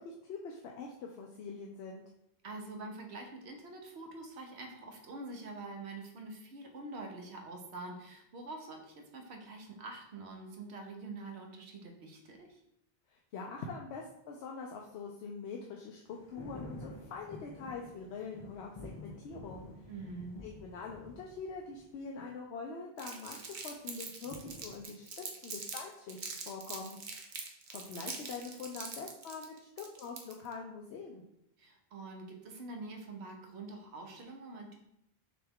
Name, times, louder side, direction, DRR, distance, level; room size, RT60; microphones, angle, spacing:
voice 1, 0.0-2.0 13.1-19.7 20.4-23.4 23.6-31.2, left 4 dB, 85° left, 0 dB, 0.8 m, -44 dB
voice 2, 2.4-12.6 19.9-20.4 31.6-34.7, right 2 dB, 85° right, 2 dB, 1.1 m, -45 dB
sound 1, 16.1-22.1 24.2-24.8, left 2 dB, 40° left, 0.4 m, -49 dB
Crumpling crinkling, 23.0-25.8 26.1-30.5, right 4 dB, 55° right, 0.8 m, -43 dB
6.1 x 2.3 x 3.5 m, 0.79 s
omnidirectional pair, 1.1 m